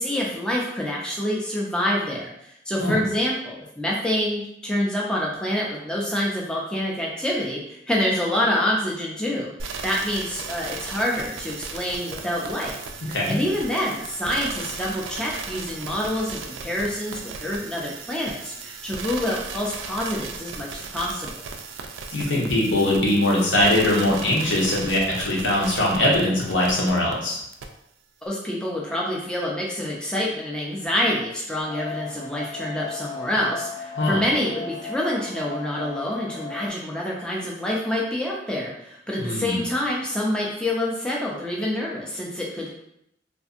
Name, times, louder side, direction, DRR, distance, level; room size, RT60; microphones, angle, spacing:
voice 1, 0.0-12.8 13.3-21.3 28.2-42.7, left 1 dB, 5° left, -4 dB, 0.3 m, -27 dB
sound 1, 9.6-27.1 27.5-27.6, right 5 dB, 85° right, 0.3 m, -36 dB
voice 2, 13.1-13.4 22.1-27.4 34.0-34.2 39.2-39.6, left 1 dB, 85° left, -4 dB, 0.9 m, -21 dB
sound 2, 31.6-36.7, left 4 dB, 70° left, 0.5 m, -36 dB
2.5 x 2.5 x 2.4 m, 0.77 s
head